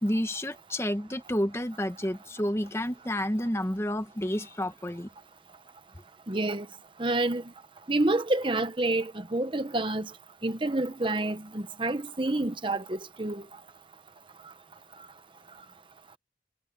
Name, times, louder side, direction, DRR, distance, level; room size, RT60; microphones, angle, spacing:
voice 1, 0.0-5.1, equal, 15° left, 1.1 m, -30 dB
voice 2, 6.3-6.7 7.0-7.4 7.9-10.1 10.4-13.4, right 2 dB, 30° right, 0.9 m, -28 dB
head